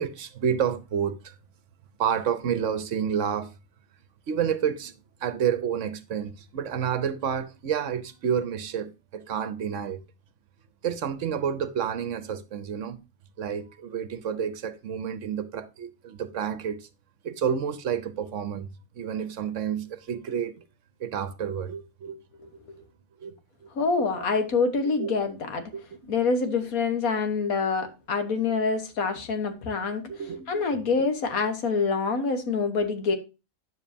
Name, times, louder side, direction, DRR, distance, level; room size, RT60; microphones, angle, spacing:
voice 1, 0.0-1.3 2.0-3.5 4.3-10.0 10.8-13.0 13.4-16.9 17.2-18.7 18.9-20.7 21.0-22.2 23.2-23.4 23.6-23.7 24.0-24.2 25.0-25.2 25.7-26.1 28.3-28.6 29.9-30.7, right 8 dB, 65° right, 1.1 m, -30 dB
voice 2, 23.8-25.6 26.1-30.0 30.5-33.1, left 4 dB, 90° left, 1.8 m, -26 dB
9.9 x 7.2 x 2.7 m
omnidirectional pair, 1.4 m